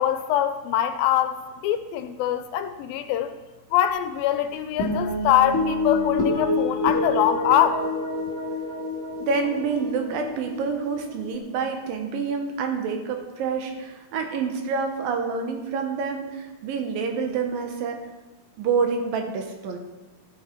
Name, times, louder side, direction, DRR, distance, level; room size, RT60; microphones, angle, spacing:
voice 1, 0.0-3.3 3.7-7.8, left 11 dB, 80° left, 10 dB, 2.3 m, -23 dB
sound 1, 4.8-11.4, left 2 dB, 35° left, 1.5 m, -27 dB
voice 2, 9.2-18.0 18.6-19.8, right 5 dB, 75° right, 4 dB, 2.7 m, -27 dB
13.0 x 6.5 x 4.4 m, 1.1 s
omnidirectional pair, 4.2 m